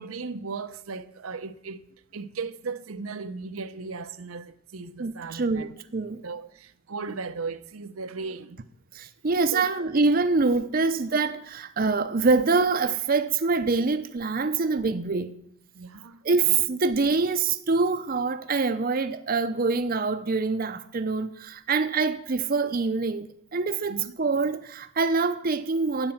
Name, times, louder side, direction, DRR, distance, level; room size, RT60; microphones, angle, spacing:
voice 1, 0.0-1.8 2.1-5.7 6.2-8.6 9.5-9.6 15.7-16.2 23.9-24.1, right 4 dB, 85° right, 0.8 m, -36 dB
voice 2, 5.0-6.2 8.9-15.3 16.2-26.1, right 4 dB, 45° right, 0.6 m, -25 dB
12.0 x 8.9 x 7.2 m
head